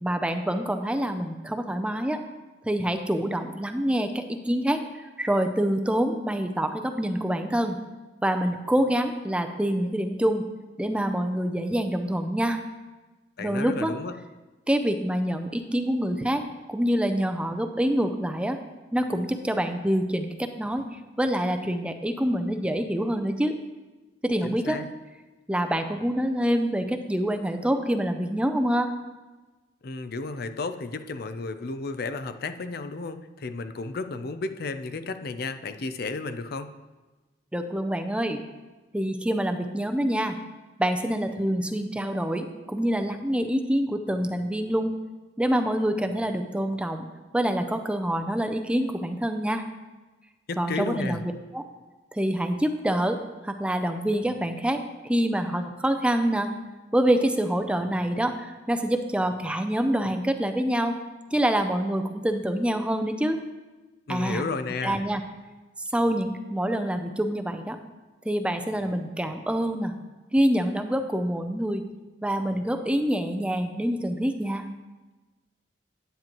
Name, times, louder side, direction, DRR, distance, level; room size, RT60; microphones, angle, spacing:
voice 1, 0.0-2.2 2.6-7.8 8.2-10.5 10.8-12.6 13.4-13.9 14.7-16.4 16.7-18.6 18.9-20.8 21.2-23.6 24.2-24.8 25.5-28.9 37.5-38.4 38.9-40.4 40.8-44.9 45.4-47.1 47.3-49.6 50.6-51.2 51.5-51.7 52.1-56.5 56.9-61.0 61.3-63.4 64.1-64.4 64.8-65.2 65.9-67.8 68.2-69.9 70.3-71.9 72.2-74.7, right 1 dB, 5° right, 7 dB, 0.5 m, -26 dB
voice 2, 13.4-14.2 24.4-24.9 29.8-36.7 50.5-51.2 64.1-65.0, left 3 dB, 60° left, 9 dB, 0.5 m, -33 dB
10.0 x 9.1 x 3.0 m, 1.2 s
head